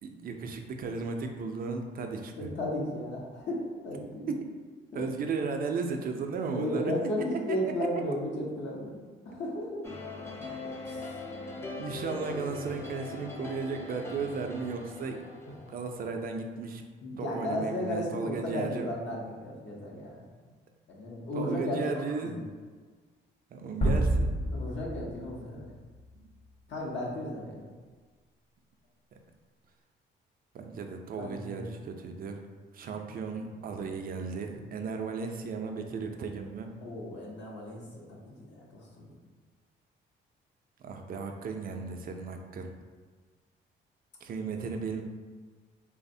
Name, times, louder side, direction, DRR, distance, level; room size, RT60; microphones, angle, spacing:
voice 1, 0.0-2.5 4.3-4.5 4.9-6.9 7.3-7.9 11.8-15.2 15.7-16.8 17.2-18.9 21.3-22.5 23.5-24.3 30.5-32.4 32.7-36.7 40.8-42.7 44.2-45.0, right 4 dB, 45° right, 4 dB, 0.4 m, -35 dB
voice 2, 2.4-4.3 4.9-5.0 6.5-9.8 10.8-11.1 15.5-15.6 17.0-20.3 20.9-22.2 24.5-25.7 26.7-27.7 31.2-31.7 36.8-39.2, left 1 dB, 65° left, -3 dB, 0.7 m, -35 dB
sound 1, 9.8-16.1, left 3 dB, 15° left, 0.4 m, -41 dB
sound 2, 23.8-26.2, right 1 dB, 35° left, 0.9 m, -29 dB
3.2 x 2.0 x 2.6 m, 1.5 s
cardioid pair, 90°, 20 cm